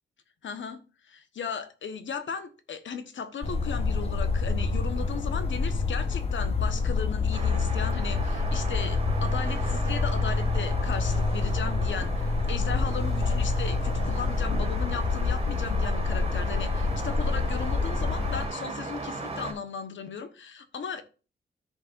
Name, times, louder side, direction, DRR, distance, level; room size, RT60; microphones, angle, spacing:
voice 1, 0.4-21.0, left 6 dB, 80° left, 1.2 m, -36 dB
sound 1, 3.4-18.5, left 3 dB, 30° left, 1.1 m, -27 dB
sound 2, 7.3-19.5, right 3 dB, 30° right, 2.0 m, -38 dB
14.0 x 5.5 x 2.6 m
wide cardioid pair, 180°, 19 cm